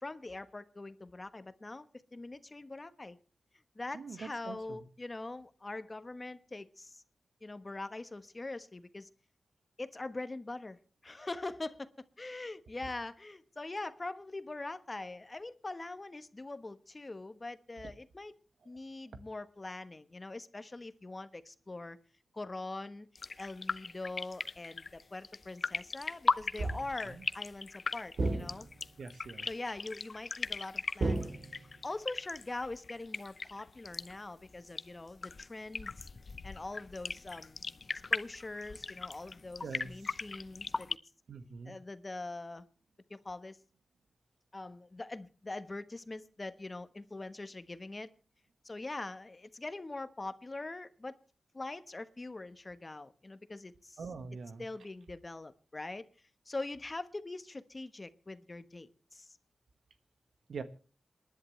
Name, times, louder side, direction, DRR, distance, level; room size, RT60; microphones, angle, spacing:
voice 1, 0.0-3.2 3.7-7.0 7.4-9.1 9.8-10.8 11.0-11.9 12.2-18.3 18.6-22.0 22.3-23.1 23.4-28.7 29.4-36.1 36.4-37.6 38.1-41.0 41.6-42.7 43.1-43.6 44.5-48.1 48.6-51.2 51.5-54.1 54.6-56.1 56.5-59.4, left 2 dB, 30° left, 12 dB, 1.2 m, -43 dB
sound 1, 23.2-41.0, left 4 dB, 55° left, 0.7 m, -39 dB
sound 2, 26.6-27.1 28.2-29.0 31.0-31.9, right 2 dB, 70° right, 3.2 m, -34 dB
voice 2, 29.0-29.5 39.6-39.9 41.3-41.8 54.0-54.6 60.5-60.6, right 5 dB, 85° right, 10 dB, 1.5 m, -43 dB
27.5 x 11.0 x 3.2 m, 0.38 s
cardioid pair, 70°, 0 cm